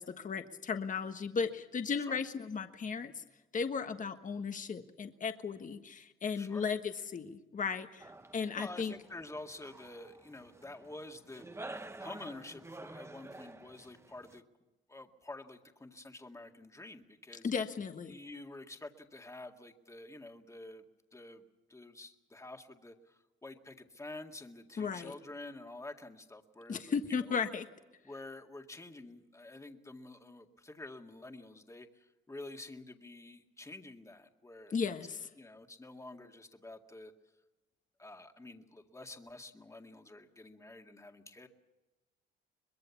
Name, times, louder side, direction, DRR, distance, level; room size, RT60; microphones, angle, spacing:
voice 1, 0.0-3.2 3.5-8.9 17.4-18.2 24.8-25.1 26.7-27.7 34.7-35.2, left 5 dB, 40° left, 7 dB, 1.4 m, -35 dB
sound 1, 8.0-14.4, right 2 dB, 15° right, 1.1 m, -50 dB
voice 2, 8.6-11.7 12.0-14.4 14.9-17.5 18.1-20.9 21.1-21.4 21.7-27.0 27.3-27.4 28.0-34.8 35.4-37.1 38.0-41.5, left 2 dB, 15° left, 4 dB, 2.0 m, -49 dB
23.5 x 21.5 x 7.1 m, 1.1 s
cardioid pair, 90°, 20 cm